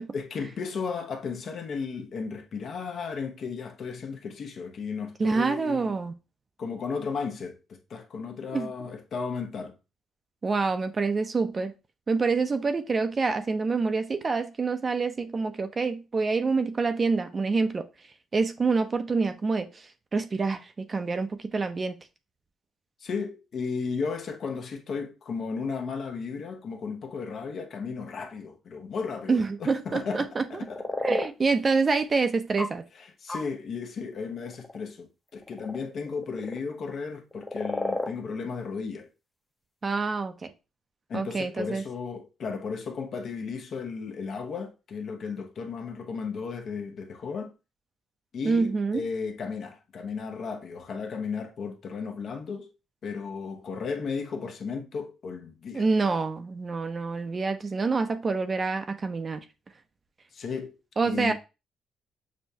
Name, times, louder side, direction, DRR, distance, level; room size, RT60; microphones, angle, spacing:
voice 1, 0.1-5.9 6.6-9.8 23.0-31.0 33.0-39.1 41.1-47.5 48.3-52.7 53.0-55.9 60.3-60.8 61.0-61.3, left 5 dB, 60° left, 0.8 m, -34 dB
voice 2, 5.2-6.1 8.5-8.7 10.4-11.7 12.1-17.8 18.3-22.0 29.3-30.5 31.0-32.8 39.8-40.5 41.1-41.8 48.4-49.0 55.7-59.4 61.0-61.3, right 4 dB, 35° right, 0.5 m, -27 dB
sound 1, 30.6-31.3 32.6-32.7 33.3-33.4 34.3-34.8 35.3-36.6 37.3-38.1 39.0-39.1, left 2 dB, 15° left, 0.7 m, -31 dB
6.2 x 2.2 x 2.7 m
cardioid pair, 90°, 0 cm